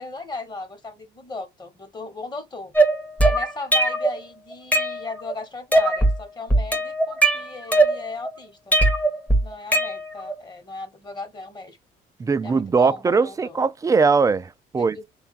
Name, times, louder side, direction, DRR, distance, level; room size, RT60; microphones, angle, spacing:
voice 1, 0.0-2.7 3.2-8.8 9.4-11.8 12.4-13.6 14.8-15.0, left 3 dB, 25° left, 1.1 m, -36 dB
sound 1, 2.7-4.2 4.5-5.3 5.7-6.2 6.5-8.3 8.7-10.3, right 2 dB, 10° left, 0.8 m, -20 dB
voice 2, 12.2-15.0, right 4 dB, 20° right, 0.3 m, -20 dB
3.3 x 2.3 x 3.9 m
cardioid pair, 110°, 17 cm